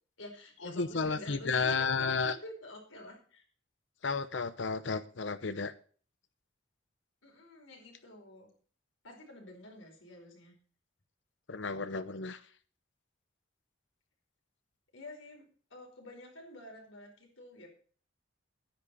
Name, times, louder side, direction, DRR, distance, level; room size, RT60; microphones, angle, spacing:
voice 1, 0.2-3.4 7.2-8.5 9.0-10.5 14.9-17.7, left 1 dB, 90° left, 2 dB, 4.9 m, -49 dB
voice 2, 0.8-2.3 4.0-5.7 11.5-12.4, left 4 dB, 65° left, 13 dB, 0.9 m, -32 dB
11.5 x 10.5 x 5.5 m, 0.42 s
head